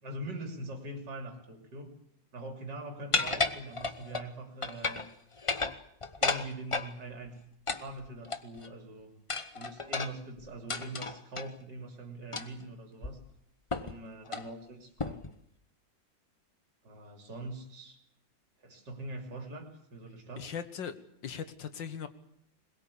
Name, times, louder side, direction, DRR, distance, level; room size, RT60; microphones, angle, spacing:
voice 1, 0.0-1.9 2.3-5.1 6.2-7.4 7.8-9.1 9.6-13.2 13.8-15.2 16.8-18.0 18.6-20.5, right 1 dB, 60° right, 3 dB, 3.8 m, -43 dB
sound 1, 3.1-4.3 4.6-5.1 5.4-6.9 7.7-8.7 9.3-11.5 12.3-12.6 13.0-13.1 13.7-14.0 14.3-14.5 15.0-15.3, left 3 dB, 35° left, 0.5 m, -33 dB
voice 2, 20.4-20.9 21.2-22.1, left 7 dB, 70° left, 11 dB, 2.0 m, -39 dB
21.5 x 21.5 x 8.5 m, 0.70 s
omnidirectional pair, 2.1 m